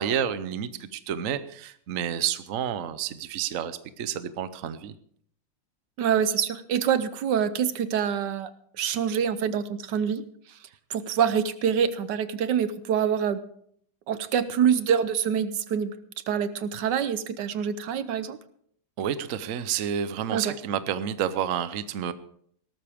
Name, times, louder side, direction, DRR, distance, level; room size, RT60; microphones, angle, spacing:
voice 1, 0.0-4.9 19.0-22.1, right 9 dB, 80° right, 13 dB, 0.7 m, -30 dB
voice 2, 6.0-8.5 8.8-10.2 10.9-13.4 14.1-15.9 16.3-18.4 20.3-20.5, right 8 dB, 65° right, 13 dB, 1.2 m, -25 dB
17.5 x 13.5 x 3.5 m, 0.64 s
omnidirectional pair, 2.4 m